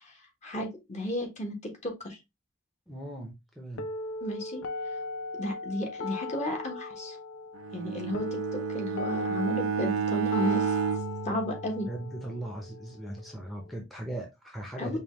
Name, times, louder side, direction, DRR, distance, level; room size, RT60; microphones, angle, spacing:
voice 1, 0.4-2.2 4.2-4.6 5.4-7.2 7.7-10.7 11.2-11.9 14.8-15.0, equal, 35° left, 1.2 m, -33 dB
voice 2, 2.9-3.9 11.9-15.0, right 1 dB, ahead, 0.7 m, -39 dB
sound 1, 3.8-13.8, left 2 dB, 60° left, 0.4 m, -38 dB
Bowed string instrument, 7.6-12.2, right 7 dB, 80° right, 0.4 m, -31 dB
5.3 x 2.3 x 3.0 m
head